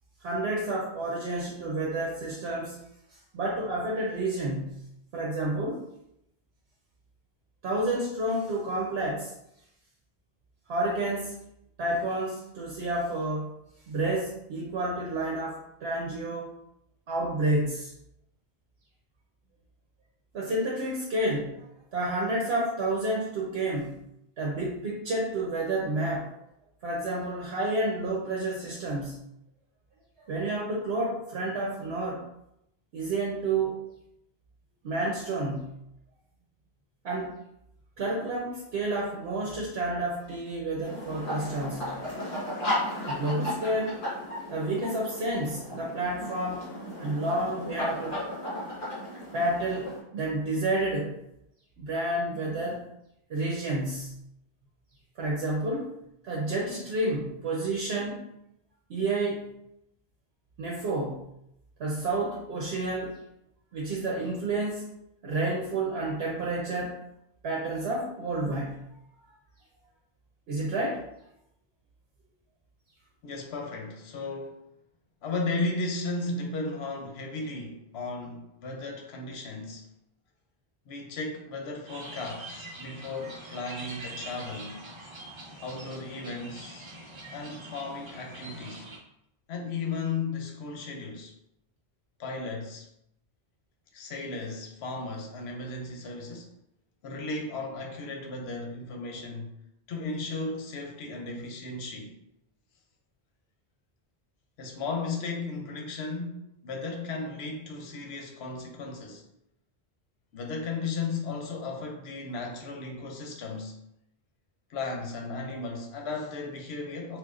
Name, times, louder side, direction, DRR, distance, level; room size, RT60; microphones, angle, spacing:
voice 1, 0.2-2.8 3.3-4.9 5.1-5.9 7.6-9.3 10.7-11.4 11.8-13.5 13.9-16.5 17.1-17.9 20.3-21.6 21.9-24.0 24.4-26.3 26.8-29.2 30.3-32.2 32.9-33.8 34.8-35.8 37.0-37.3 38.0-41.9 43.0-44.0 44.5-46.7 47.0-48.2 49.3-51.2 51.8-52.8 53.3-54.2 55.2-55.9 56.2-58.3 58.9-59.5 60.6-61.2 61.8-63.2 63.7-64.9 65.2-67.0 67.4-68.9 69.2-69.3 70.5-71.0, right 2 dB, 85° right, 1.0 m, -30 dB
sound 1, 40.8-50.0, left 1 dB, 60° left, 1.5 m, -35 dB
voice 2, 73.2-74.6 75.2-79.9 80.9-84.8 85.6-86.9 87.3-88.9 89.5-91.3 92.2-92.9 93.9-96.5 97.0-99.5 99.9-102.2 104.6-109.2 110.3-113.8 114.7-117.2, left 3 dB, 85° left, 0.8 m, -35 dB
sound 2, 81.9-89.0, right 2 dB, 35° right, 0.5 m, -44 dB
4.3 x 2.1 x 2.4 m
omnidirectional pair, 1.0 m